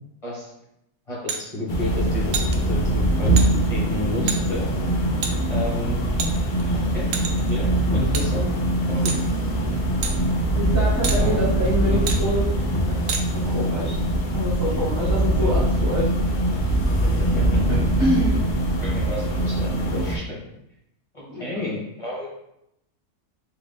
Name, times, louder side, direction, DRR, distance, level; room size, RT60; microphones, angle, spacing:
voice 1, 1.1-3.4 3.7-4.7 5.5-6.0 6.7-7.1 7.5-8.5 8.9-9.2 11.2-11.5 17.3-17.6 18.8-20.4 21.1-22.3, left 1 dB, 25° left, -5 dB, 1.2 m, -31 dB
sound 1, 1.3-1.4 2.3-2.6 3.4-3.5 4.3-4.4 5.2-5.3 6.2-6.6 7.1-7.5 8.1-8.3 9.0-9.2 10.0-10.1 11.0-11.2 12.1-12.2 13.1-13.2, right 5 dB, 70° right, 0.9 m, -27 dB
sound 2, 1.7-20.2, right 1 dB, 60° left, 0.5 m, -22 dB
voice 2, 10.5-12.5 12.9-13.1 13.5-14.0 14.3-16.1 17.7-18.4 21.3-21.6, equal, 15° right, -10 dB, 0.7 m, -26 dB
3.9 x 2.8 x 3.5 m, 0.82 s
omnidirectional pair, 1.6 m